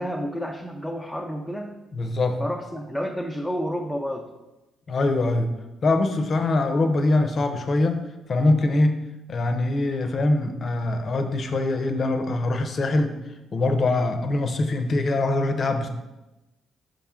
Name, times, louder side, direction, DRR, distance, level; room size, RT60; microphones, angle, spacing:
voice 1, 0.0-1.7 2.4-4.3, equal, ahead, -1 dB, 0.6 m, -30 dB
voice 2, 1.9-2.4 4.9-5.5 5.8-9.0 9.3-13.2 13.5-15.9, left 2 dB, 45° left, 7 dB, 0.7 m, -23 dB
5.6 x 5.3 x 3.7 m, 1.0 s
cardioid pair, 90°, 0 cm